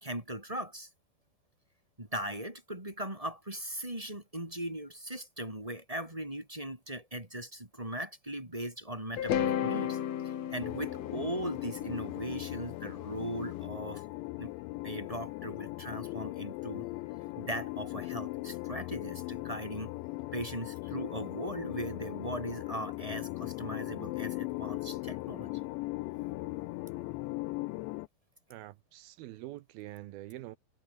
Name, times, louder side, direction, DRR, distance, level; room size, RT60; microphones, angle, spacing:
voice 1, 0.0-0.9 2.0-10.0 10.2-14.0 14.4-14.5 14.8-16.9 17.4-19.9 20.3-25.5, right 1 dB, 10° right, 2.7 m, -39 dB
sound 1, 9.2-13.3, left 10 dB, 65° left, 1.7 m, -34 dB
sound 2, 10.6-28.1, left 21 dB, 80° left, 2.9 m, -39 dB
voice 2, 28.5-30.6, right 16 dB, 80° right, 2.2 m, -45 dB
omnidirectional pair, 5.3 m